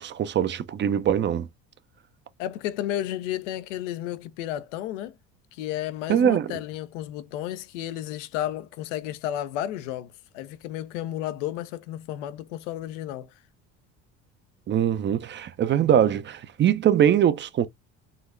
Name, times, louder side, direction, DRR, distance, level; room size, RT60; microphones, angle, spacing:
voice 1, 0.0-1.5 6.1-6.5 14.7-17.7, right 9 dB, 30° right, 0.4 m, -22 dB
voice 2, 2.4-5.2 5.5-13.4, left 12 dB, 90° left, 0.5 m, -32 dB
3.8 x 2.1 x 2.4 m
supercardioid pair, 85°, 36 cm